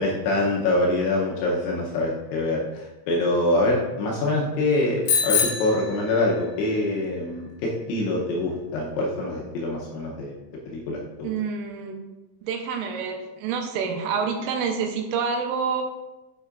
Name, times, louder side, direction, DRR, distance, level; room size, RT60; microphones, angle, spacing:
voice 1, 0.0-10.4 10.7-11.3, left 2 dB, 80° left, -2 dB, 2.8 m, -25 dB
Bicycle bell, 5.1-6.6, left 6 dB, 65° left, 2.9 m, -25 dB
voice 2, 11.2-12.0 12.4-15.8, right 6 dB, 80° right, 3 dB, 3.1 m, -27 dB
9.3 x 5.4 x 2.4 m, 1.1 s
omnidirectional pair, 6.0 m